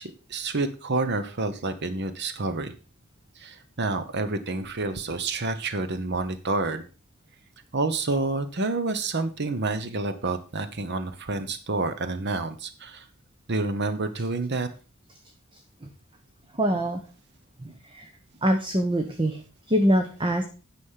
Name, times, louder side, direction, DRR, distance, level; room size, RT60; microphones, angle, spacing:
voice 1, 0.0-2.7 3.4-6.8 7.7-13.1 13.5-14.7, right 3 dB, 50° right, 11 dB, 0.9 m, -28 dB
voice 2, 16.6-17.0 17.9-18.1 18.4-19.4 19.7-20.4, equal, 25° right, 5 dB, 1.0 m, -23 dB
9.8 x 6.3 x 5.6 m, 0.35 s
head